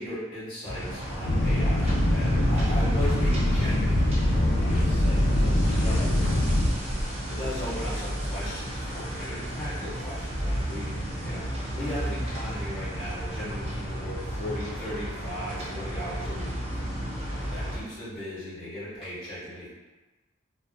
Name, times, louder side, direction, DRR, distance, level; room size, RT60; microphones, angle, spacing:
voice 1, 0.0-6.3 7.3-16.6 17.5-19.7, equal, 25° left, -11 dB, 1.4 m, -37 dB
sound 1, 0.6-17.8, equal, 30° right, 0.5 m, -33 dB
sound 2, 1.2-6.7, left 1 dB, 80° left, 0.5 m, -23 dB
2.5 x 2.3 x 2.2 m, 1.2 s
head